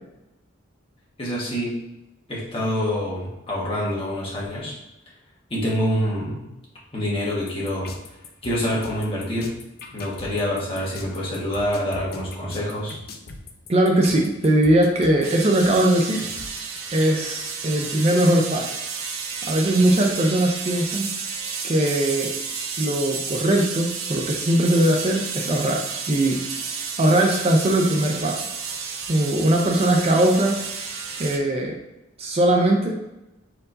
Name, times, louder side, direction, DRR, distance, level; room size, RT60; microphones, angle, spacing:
voice 1, 1.2-1.7 2.3-4.7 5.5-6.5 6.9-7.9 8.4-9.5 9.9-13.0, equal, 25° left, -5 dB, 1.3 m, -26 dB
sound 1, 7.5-17.0, left 4 dB, 50° left, 0.5 m, -41 dB
voice 2, 13.7-16.2 16.9-18.7 19.4-21.1 21.6-22.3 22.8-26.4 27.0-28.5 29.1-30.6 31.2-31.8 32.2-33.0, right 1 dB, 30° right, 1 dB, 0.5 m, -20 dB
sound 2, 15.2-31.4, right 5 dB, 80° right, 0.6 m, -32 dB
4.4 x 3.9 x 2.6 m, 0.95 s
head